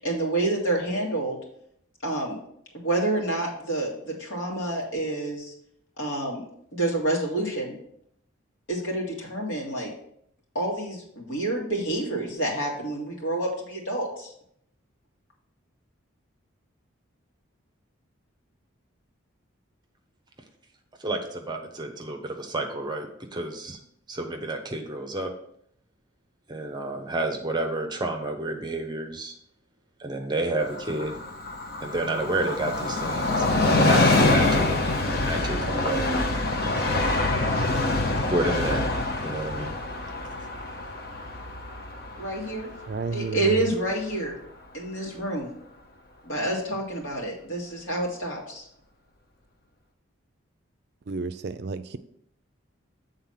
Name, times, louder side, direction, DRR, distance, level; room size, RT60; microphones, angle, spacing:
voice 1, 0.0-1.4 2.0-2.4 2.7-5.5 6.0-7.8 8.7-9.9 10.5-14.3 42.2-42.7 43.1-44.3 44.7-45.5 46.2-48.7, right 2 dB, 75° left, -2 dB, 2.1 m, -28 dB
voice 2, 21.0-23.1 23.3-23.8 24.1-25.3 26.5-29.3 30.0-31.2 31.8-36.3 38.3-38.9 39.2-39.7, right 2 dB, 20° right, 4 dB, 0.8 m, -30 dB
Train, 30.6-43.9 44.3-44.4, left 2 dB, 50° left, 0.8 m, -25 dB
voice 3, 42.9-43.7 51.1-52.0, right 4 dB, 50° right, 11 dB, 0.4 m, -32 dB
7.6 x 3.9 x 5.7 m, 0.70 s
head